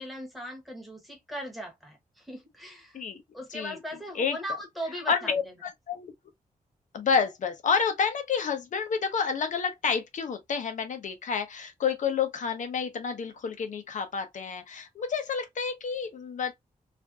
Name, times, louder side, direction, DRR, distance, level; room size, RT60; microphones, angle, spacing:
voice 1, 0.0-3.0 3.3-5.3, equal, ahead, 1.0 m, -38 dB
voice 2, 5.1-6.1 6.9-16.5, left 6 dB, 60° left, 0.7 m, -29 dB
3.4 x 2.5 x 2.3 m
wide cardioid pair, 170°, 14 cm